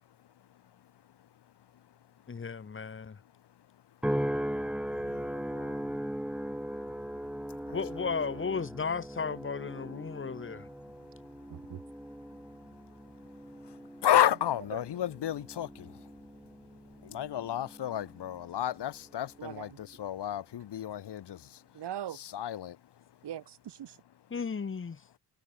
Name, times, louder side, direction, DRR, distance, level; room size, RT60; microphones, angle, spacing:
voice 1, 2.3-3.2 7.7-10.7 24.3-25.0, left 5 dB, 30° left, 1.5 m, -35 dB
sound 1, 4.0-18.5 19.0-19.5, equal, 5° right, 2.0 m, -39 dB
voice 2, 11.5-11.8 14.7-14.8 19.4-19.8 21.7-22.2 23.2-24.0, right 10 dB, 80° right, 3.0 m, -40 dB
voice 3, 14.0-15.9 17.1-21.4 22.1-22.7, left 11 dB, 80° left, 2.5 m, -31 dB
wide cardioid pair, 135°, 40 cm